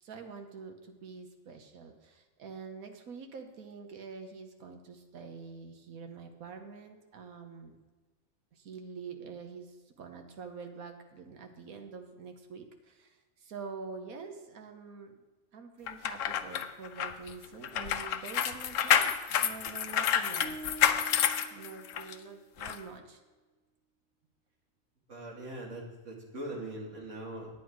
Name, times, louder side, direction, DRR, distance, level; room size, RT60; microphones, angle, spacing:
voice 1, 0.0-7.8 8.5-15.1 15.5-20.6 21.5-23.2, right 5 dB, 85° right, 5 dB, 1.4 m, -46 dB
sound 1, 15.9-22.1 22.6-22.8, left 9 dB, 70° left, 1.0 m, -29 dB
sound 2, 20.4-22.6, right 3 dB, 15° left, 1.0 m, -47 dB
voice 2, 25.1-27.5, right 1 dB, 60° right, -2 dB, 2.4 m, -41 dB
9.4 x 9.1 x 4.7 m, 1.3 s
omnidirectional pair, 1.5 m